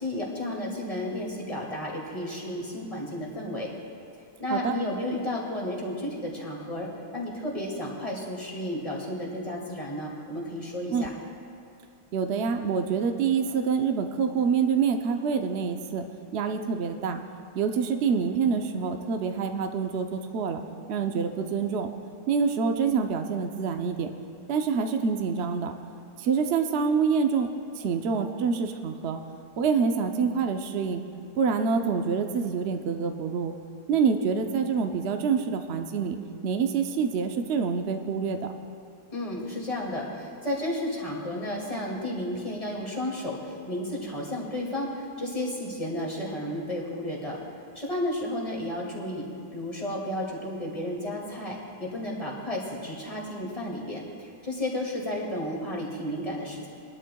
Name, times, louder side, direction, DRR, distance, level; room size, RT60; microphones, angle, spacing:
voice 1, 0.0-3.7 4.4-11.1 39.1-47.4 47.7-56.7, left 1 dB, 20° left, -4 dB, 2.2 m, -32 dB
voice 2, 12.1-16.0 16.3-17.2 17.5-20.6 20.9-21.9 22.3-24.1 24.5-25.7 26.2-27.5 27.8-29.2 29.6-31.0 31.4-33.5 33.9-36.2 36.4-38.5, right 6 dB, 65° right, 5 dB, 0.6 m, -26 dB
21.5 x 12.0 x 2.3 m, 2.4 s
omnidirectional pair, 1.9 m